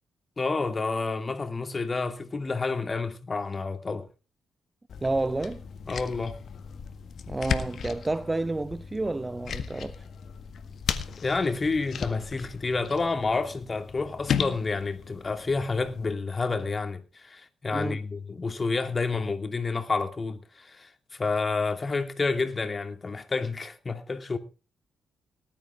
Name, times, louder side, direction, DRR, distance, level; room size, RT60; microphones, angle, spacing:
voice 1, 0.4-4.1 5.8-6.4 11.2-24.4, left 3 dB, 35° left, 2.7 m, -29 dB
sound 1, 4.9-16.1, left 7 dB, 55° left, 1.7 m, -36 dB
voice 2, 5.0-5.6 7.3-10.1 17.7-18.0, right 2 dB, 20° right, 0.7 m, -30 dB
19.0 x 12.0 x 3.6 m
hypercardioid pair, 40°, 0 cm